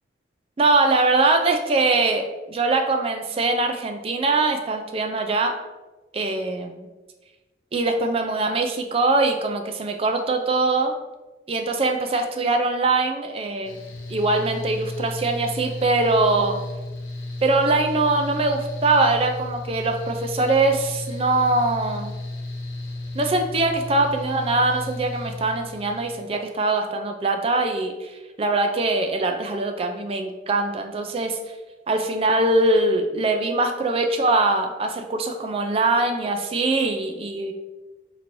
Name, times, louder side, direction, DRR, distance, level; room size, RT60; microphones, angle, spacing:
voice 1, 0.6-5.6 6.1-6.9 7.7-11.0 11.5-13.8 14.1-16.6 17.4-22.1 23.1-31.4 31.9-37.5, right 2 dB, 30° right, 5 dB, 0.3 m, -22 dB
Mechanical fan, 13.6-26.2, left 2 dB, 85° left, 0.7 m, -34 dB
4.4 x 3.0 x 2.6 m, 1.2 s
head